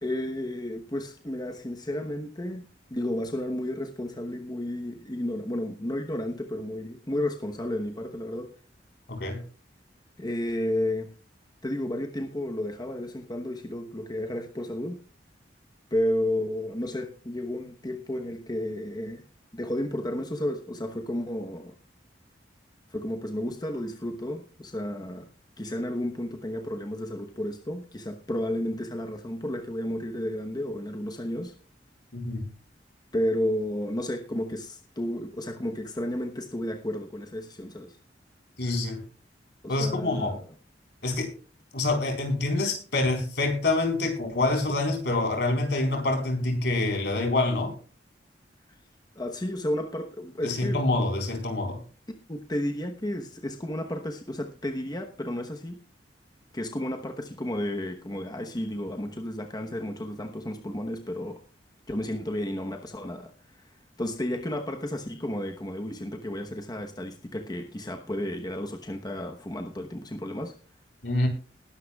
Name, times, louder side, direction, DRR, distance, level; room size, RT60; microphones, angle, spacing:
voice 1, 0.0-2.6 2.9-8.5 10.2-11.1 11.6-15.0 15.9-19.2 19.5-21.8 22.9-25.3 25.6-31.5 33.1-38.0 39.6-40.4 49.2-50.8 52.3-55.8 56.5-61.4 61.9-63.7 64.0-70.6, left 1 dB, 25° left, 3 dB, 1.0 m, -32 dB
voice 2, 9.1-9.4 32.1-32.5 38.6-39.0 39.7-40.4 41.0-41.3 41.7-47.7 50.4-51.8 71.0-71.3, left 2 dB, 70° left, 3 dB, 4.3 m, -26 dB
20.0 x 11.5 x 2.4 m, 0.37 s
head